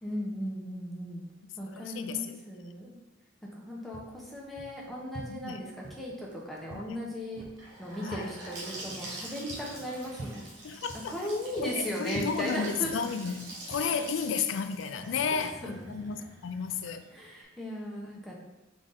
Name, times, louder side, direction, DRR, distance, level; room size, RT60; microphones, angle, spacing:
voice 1, 0.0-1.2 1.6-2.9 3.5-7.4 7.8-10.7 11.1-12.9 15.3-15.9 17.1-18.3, equal, ahead, -4 dB, 0.8 m, -37 dB
voice 2, 1.7-2.4 5.3-5.6 6.7-7.0 8.0-8.3 10.6-11.2 11.6-17.0, left 6 dB, 70° left, 9 dB, 0.4 m, -33 dB
sound 1, 3.9-13.9, right 2 dB, 40° right, 0.7 m, -48 dB
Gurgling / Sink (filling or washing) / Bathtub (filling or washing), 7.6-17.4, right 1 dB, 65° right, 1.2 m, -45 dB
3.9 x 3.6 x 3.7 m, 1.0 s
head